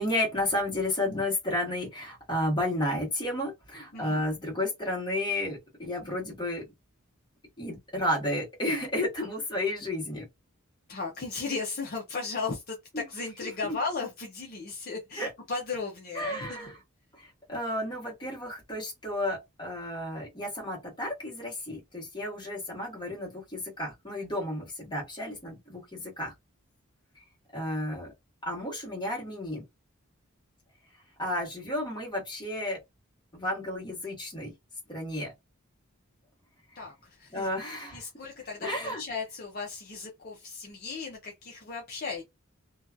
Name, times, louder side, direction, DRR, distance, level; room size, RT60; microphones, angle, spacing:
voice 1, 0.0-6.6 7.6-10.2 12.9-13.0 13.4-13.7 15.2-15.3 16.1-16.8 17.1-26.3 27.5-28.1 28.4-29.6 31.2-32.8 33.3-34.5 34.9-35.3 37.3-38.1 38.6-39.0, left 1 dB, 20° left, 1.2 m, -32 dB
voice 2, 10.9-16.7 36.8-37.5 37.9-42.2, left 4 dB, 45° left, 0.6 m, -36 dB
2.7 x 2.3 x 2.5 m
head